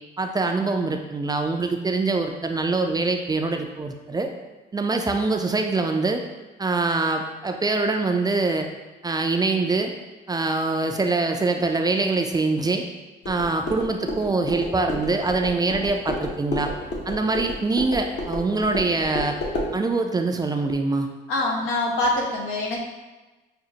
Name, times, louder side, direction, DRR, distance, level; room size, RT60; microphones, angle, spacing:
voice 1, 0.2-4.3 4.7-6.2 6.6-8.7 9.0-9.9 10.3-12.8 13.3-16.7 17.1-19.4 19.7-21.1, right 3 dB, 20° right, 4 dB, 0.3 m, -24 dB
sound 1, 13.2-19.7, left 1 dB, 60° left, 0.9 m, -31 dB
voice 2, 21.3-22.8, left 2 dB, 85° left, -1 dB, 0.8 m, -24 dB
6.0 x 2.0 x 2.7 m, 1.2 s
cardioid pair, 90°, 20 cm